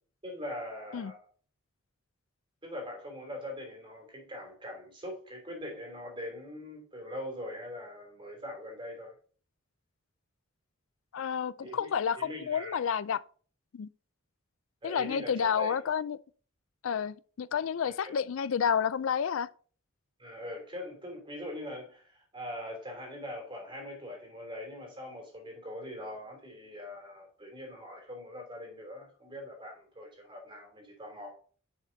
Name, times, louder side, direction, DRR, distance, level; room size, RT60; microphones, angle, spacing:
voice 1, 0.2-1.2 2.6-9.1 11.6-12.8 14.8-15.8 17.8-18.1 20.2-31.3, left 1 dB, 25° right, 3.0 m, -42 dB
voice 2, 11.1-13.2 13.7-13.9 14.8-16.2 16.8-19.5, left 7 dB, 65° left, 0.4 m, -30 dB
10.0 x 5.9 x 2.7 m
head